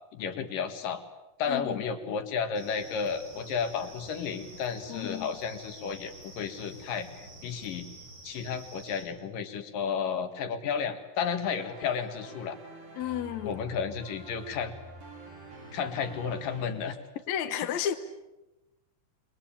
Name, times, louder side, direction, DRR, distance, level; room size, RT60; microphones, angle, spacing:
voice 1, 0.1-1.0 1.4-7.9 8.2-12.6 13.4-14.7 15.7-17.0, left 6 dB, 80° left, 3.4 m, -32 dB
voice 2, 1.5-1.8 4.9-5.3 12.9-13.6 17.3-18.0, left 10 dB, 65° left, 2.4 m, -32 dB
sound 1, 2.5-9.0, right 2 dB, 30° right, 8.5 m, -49 dB
sound 2, 11.4-16.7, right 1 dB, 70° right, 7.4 m, -47 dB
27.0 x 23.5 x 8.8 m
omnidirectional pair, 3.8 m